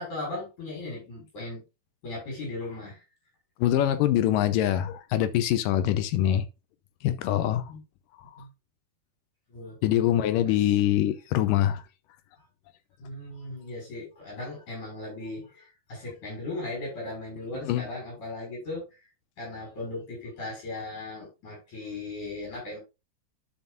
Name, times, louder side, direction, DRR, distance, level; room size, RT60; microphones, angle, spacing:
voice 1, 0.0-1.6 2.0-3.0 7.7-7.8 8.4-8.5 9.5-9.8 10.4-10.5 13.0-18.9 19.4-22.8, left 2 dB, 65° left, 7.1 m, -37 dB
voice 2, 3.6-6.5 7.0-7.7 9.8-11.8 17.6-17.8, left 12 dB, 90° left, 2.4 m, -24 dB
12.5 x 5.5 x 2.5 m
omnidirectional pair, 3.7 m